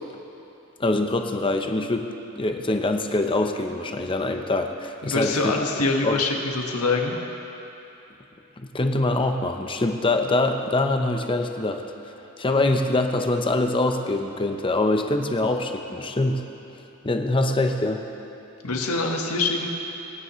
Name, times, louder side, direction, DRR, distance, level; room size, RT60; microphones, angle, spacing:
voice 1, 0.8-5.5 6.0-6.2 8.6-11.8 12.4-16.4 17.0-18.0, left 2 dB, 25° left, 5 dB, 0.7 m, -24 dB
voice 2, 5.0-7.2 18.6-19.7, left 3 dB, 85° left, 1 dB, 1.5 m, -24 dB
24.0 x 10.0 x 3.2 m, 2.9 s
head